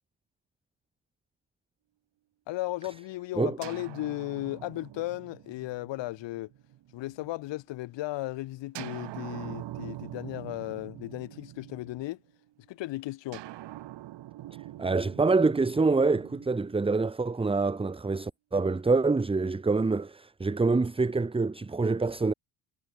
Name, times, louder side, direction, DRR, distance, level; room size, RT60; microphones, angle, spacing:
voice 1, 2.5-6.5 6.9-12.2 12.7-13.4, left 17 dB, 70° left, 1.4 m, -35 dB
sound 1, 3.6-7.4 8.7-12.3 13.3-17.5, right 14 dB, 65° right, 2.2 m, -44 dB
voice 2, 14.8-22.3, right 3 dB, 10° right, 1.1 m, -26 dB
cardioid pair, 110°, 44 cm